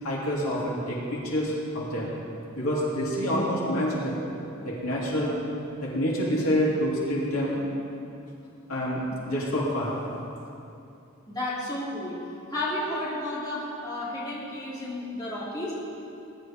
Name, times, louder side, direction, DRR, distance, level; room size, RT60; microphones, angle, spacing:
voice 1, 0.0-2.1 2.5-4.2 4.6-5.3 5.8-7.6 8.7-10.0, equal, 75° left, -6 dB, 3.1 m, -27 dB
voice 2, 11.3-12.2 12.5-15.7, left 1 dB, 20° left, -9 dB, 3.1 m, -32 dB
20.5 x 11.0 x 3.7 m, 2.7 s
head